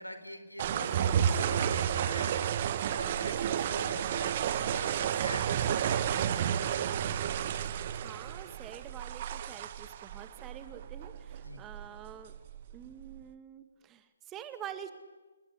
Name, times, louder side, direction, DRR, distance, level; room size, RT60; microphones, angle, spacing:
voice 1, 0.0-2.5 2.9-6.9 11.4-11.6, equal, 90° left, 8 dB, 4.8 m, -44 dB
sound 1, 0.6-13.2, right 9 dB, 35° right, 1.5 m, -31 dB
voice 2, 7.6-12.3 12.7-14.9, right 9 dB, 15° right, 11 dB, 1.9 m, -47 dB
29.0 x 21.0 x 9.8 m, 1.2 s
figure-of-eight pair, 135°, 0 cm